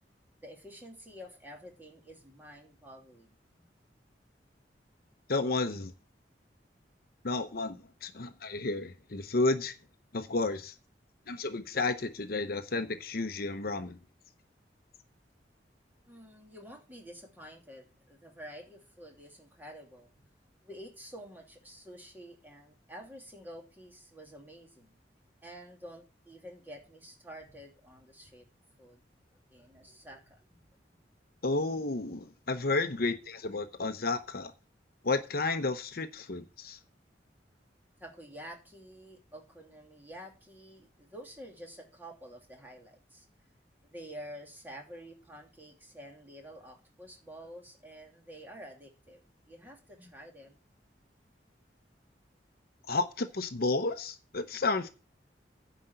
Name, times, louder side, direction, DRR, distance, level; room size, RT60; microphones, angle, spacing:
voice 1, 0.4-3.6 16.1-20.1 20.6-24.9 25.4-28.5 28.8-29.0 29.3-30.6 38.0-43.3 43.8-50.6, equal, 10° right, 2.7 m, -49 dB
voice 2, 5.3-5.9 7.2-9.7 10.1-10.7 11.3-14.0 31.4-34.5 35.0-36.8 52.9-54.9, left 3 dB, 60° left, 0.9 m, -32 dB
9.9 x 5.1 x 7.9 m
head